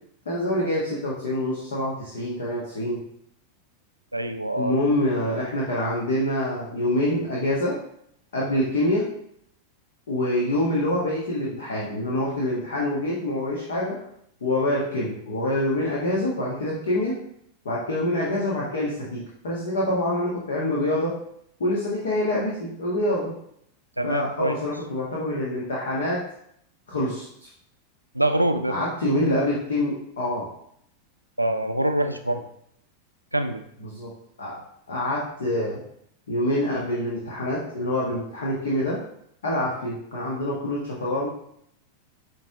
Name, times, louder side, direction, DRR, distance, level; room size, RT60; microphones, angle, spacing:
voice 1, 0.2-3.0 4.6-7.8 8.3-9.1 10.1-14.0 14.4-17.2 17.6-21.1 21.6-23.3 24.0-26.3 26.9-27.5 28.7-30.5 33.8-34.1 34.4-34.6 34.9-35.8 36.3-39.0 39.4-41.3, left 1 dB, 65° left, -5 dB, 1.5 m, -26 dB
voice 2, 4.1-4.7 24.0-24.6 28.1-28.8 31.4-32.4 33.3-33.6, right 1 dB, 85° right, 7 dB, 0.5 m, -24 dB
9.5 x 3.3 x 3.7 m, 0.72 s
figure-of-eight pair, 90°, 0 cm